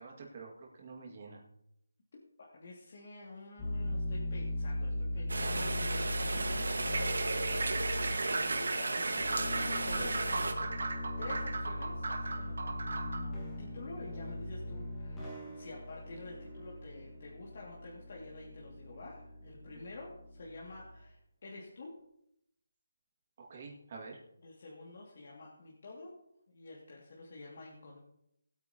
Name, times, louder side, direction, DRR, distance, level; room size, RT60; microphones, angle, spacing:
voice 1, 0.0-1.4 19.7-19.8 23.4-24.2, right 4 dB, 30° right, -1 dB, 1.9 m, -48 dB
voice 2, 2.4-6.7 7.9-10.7 11.2-21.9 24.4-26.1 26.5-28.0, left 2 dB, 40° left, -4 dB, 2.1 m, -49 dB
sound 1, 3.6-21.0, left 1 dB, 5° left, 1.6 m, -39 dB
Rain, 5.3-10.5, right 2 dB, 85° right, 1.5 m, -35 dB
sound 2, 6.8-13.3, right 3 dB, 60° right, 1.6 m, -37 dB
19.5 x 8.9 x 2.9 m, 0.79 s
hypercardioid pair, 175°, 0 cm